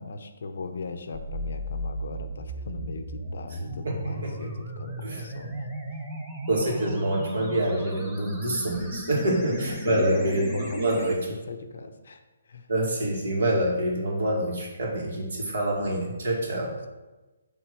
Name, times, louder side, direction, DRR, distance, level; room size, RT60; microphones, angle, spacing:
voice 1, 0.0-5.7 9.1-12.2 12.5-12.7 15.5-15.6 16.5-16.6, left 4 dB, 50° left, 7 dB, 0.7 m, -37 dB
sound 1, 1.1-11.1, equal, 5° right, 0.6 m, -36 dB
voice 2, 3.7-4.5 5.0-5.2 6.5-11.2 12.7-16.9, right 1 dB, 60° right, -1 dB, 2.2 m, -27 dB
7.7 x 3.4 x 6.1 m, 1.2 s
hypercardioid pair, 180°, 0 cm